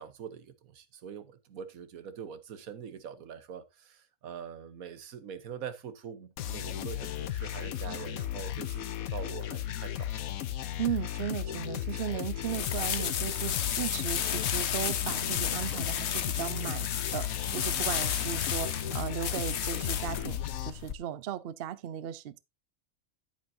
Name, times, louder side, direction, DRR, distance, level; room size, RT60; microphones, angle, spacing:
voice 1, 0.0-10.1 10.7-10.8, right 7 dB, 90° right, 1.4 m, -44 dB
sound 1, 6.4-20.7, left 11 dB, 85° left, 1.2 m, -35 dB
voice 2, 10.8-22.4, right 11 dB, 55° right, 0.7 m, -36 dB
sound 2, 12.5-20.9, left 9 dB, 55° left, 1.0 m, -33 dB
10.5 x 9.0 x 2.7 m
omnidirectional pair, 1.4 m